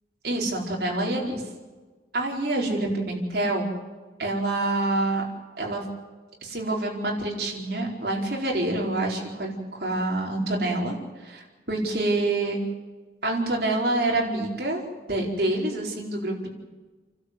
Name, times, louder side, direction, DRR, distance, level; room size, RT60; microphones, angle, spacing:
voice 1, 0.2-1.4 2.1-3.7 4.2-5.2 5.6-5.8 6.4-11.0 11.2-12.6 13.2-14.8 15.1-16.5, right 2 dB, 60° right, -2 dB, 4.7 m, -26 dB
29.5 x 12.5 x 8.1 m, 1.3 s
head